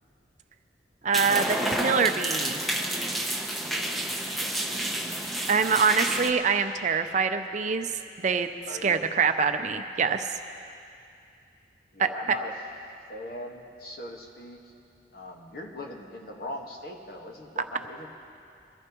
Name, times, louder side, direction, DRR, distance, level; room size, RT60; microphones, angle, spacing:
voice 1, 1.0-2.6 5.5-7.9 8.2-8.5 8.8-10.3 12.0-12.4, right 5 dB, 40° right, 8 dB, 0.5 m, -25 dB
sound 1, 1.1-6.3, right 1 dB, ahead, 0.8 m, -30 dB
voice 2, 3.1-4.0 4.3-5.0 8.7-9.0 11.9-12.5 13.1-14.7 15.1-18.1, left 1 dB, 55° left, 1 dB, 1.5 m, -41 dB
23.0 x 14.5 x 3.0 m, 2.5 s
head